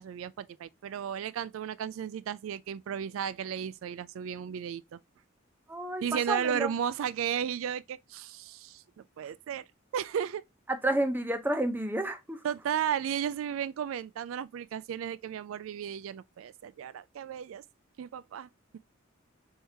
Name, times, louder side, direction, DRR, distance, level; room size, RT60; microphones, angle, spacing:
voice 1, 0.0-5.0 6.0-8.8 9.2-9.6 9.9-10.4 12.4-17.6 18.0-18.5, right 8 dB, 85° right, 0.3 m, -34 dB
voice 2, 5.7-6.7 10.7-12.4, right 1 dB, 10° right, 0.6 m, -30 dB
4.5 x 3.6 x 2.7 m
head